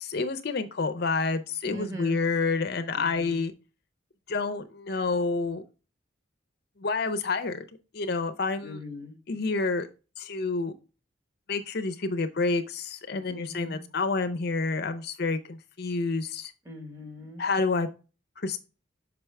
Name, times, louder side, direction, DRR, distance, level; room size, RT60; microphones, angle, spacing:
voice 1, 0.0-3.5 4.3-5.6 6.8-7.6 7.9-8.8 9.3-9.9 10.2-10.7 11.5-16.5 17.4-17.9 18.4-18.6, left 3 dB, 55° left, 9 dB, 0.6 m, -28 dB
voice 2, 1.6-2.2 2.9-3.4 8.6-9.2 13.3-13.9 16.6-17.4, left 1 dB, 20° right, 2 dB, 1.4 m, -41 dB
6.0 x 5.4 x 3.3 m, 0.32 s
head